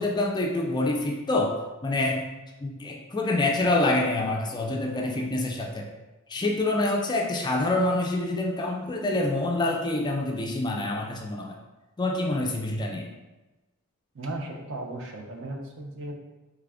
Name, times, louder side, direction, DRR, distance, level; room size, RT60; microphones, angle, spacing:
voice 1, 0.0-1.5 1.8-2.3 2.6-5.9 6.3-11.6 12.0-13.1, left 2 dB, 20° left, 1 dB, 0.3 m, -26 dB
voice 2, 14.1-16.1, right 2 dB, 60° right, 0 dB, 0.6 m, -36 dB
3.2 x 2.4 x 3.4 m, 1.1 s
head